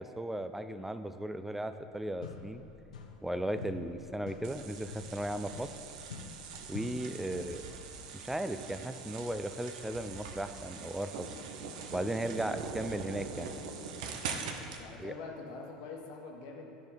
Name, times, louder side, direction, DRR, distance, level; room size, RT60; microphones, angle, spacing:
voice 1, 0.0-2.6 3.2-5.7 6.7-7.6 8.1-11.3 11.9-13.5 15.0-15.1, right 1 dB, 5° right, 10 dB, 0.4 m, -36 dB
sound 1, 1.8-1.9 2.2-3.3 3.6-7.7, left 6 dB, 80° left, 0.7 m, -47 dB
sound 2, 4.4-14.8, right 5 dB, 65° right, 0.7 m, -43 dB
voice 2, 7.2-7.6 12.4-12.5 14.8-16.7, left 4 dB, 60° left, 1 dB, 1.3 m, -45 dB
12.0 x 5.1 x 4.0 m, 2.8 s
hypercardioid pair, 80°, 4 cm